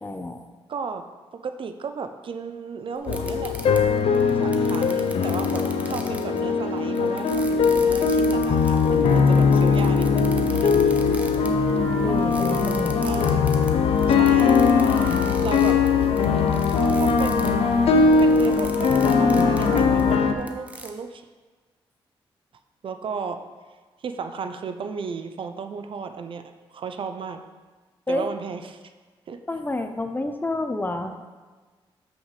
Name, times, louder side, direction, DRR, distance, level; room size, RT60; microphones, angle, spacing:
voice 1, 0.0-0.4 12.0-13.1 28.1-28.3 29.5-31.2, left 2 dB, 20° left, 7 dB, 0.6 m, -29 dB
voice 2, 0.7-1.0 1.3-3.5 4.3-11.0 13.0-13.6 14.1-14.6 15.4-15.8 16.9-17.6 17.9-21.2 22.8-23.4 24.0-26.4 26.7-27.4 28.1-28.8 29.3-29.4, right 5 dB, 60° right, 8 dB, 0.5 m, -34 dB
sound 1, 3.0-17.5 18.0-20.9, right 1 dB, 15° right, 0.8 m, -41 dB
sound 2, 3.1-20.3, left 5 dB, 80° left, 0.5 m, -21 dB
sound 3, 11.0-13.2 13.6-17.9 18.2-20.2, left 2 dB, 55° left, 1.0 m, -27 dB
7.2 x 6.0 x 3.2 m, 1.4 s
cardioid pair, 70°, 10 cm